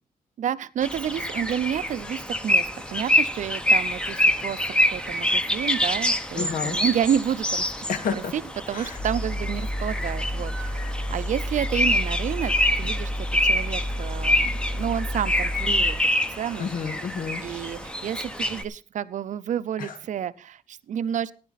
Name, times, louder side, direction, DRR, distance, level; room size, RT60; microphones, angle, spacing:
voice 1, 0.4-4.6 4.9-7.7 8.3-8.4 8.7-16.0 16.4-16.7 17.4-21.3, right 9 dB, 60° right, 15 dB, 0.6 m, -30 dB
sound 1, 0.8-18.6, left 1 dB, 5° left, 0.9 m, -26 dB
voice 2, 6.4-6.8 7.9-8.3 8.7-9.0 16.6-17.4 19.8-20.0, left 6 dB, 75° left, 7 dB, 1.8 m, -30 dB
Mechanical fan, 9.0-15.9, equal, 55° left, 3.7 m, -30 dB
15.0 x 10.5 x 4.1 m, 0.36 s
wide cardioid pair, 145°, 14 cm